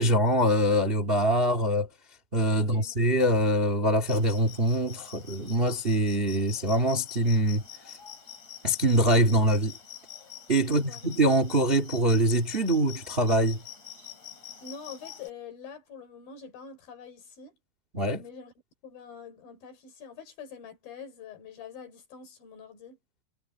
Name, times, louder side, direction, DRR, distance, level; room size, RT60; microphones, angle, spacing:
voice 1, 0.0-1.9 2.3-7.6 8.6-9.7 10.5-13.6 17.9-18.2, right 1 dB, 25° right, 1.4 m, -24 dB
voice 2, 2.6-2.9 10.6-11.1 14.6-17.6 18.1-18.5 18.8-23.0, left 6 dB, 65° left, 5.7 m, -45 dB
sound 1, 4.0-15.3, left 9 dB, 40° left, 8.0 m, -46 dB
omnidirectional pair, 4.5 m